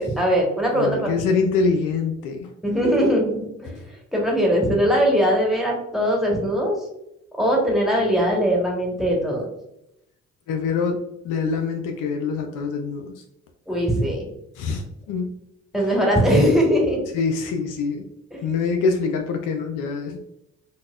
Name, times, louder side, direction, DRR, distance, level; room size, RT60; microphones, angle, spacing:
voice 1, 0.0-1.1 2.6-3.8 4.1-6.7 7.4-9.5 13.7-14.2 15.7-17.0 18.3-18.4, equal, ahead, -2 dB, 1.2 m, -20 dB
voice 2, 0.7-2.5 10.5-13.1 14.6-15.3 17.1-18.1 18.4-20.2, left 4 dB, 70° left, 4 dB, 0.5 m, -24 dB
4.0 x 2.1 x 2.3 m, 0.82 s
hypercardioid pair, 50°, 32 cm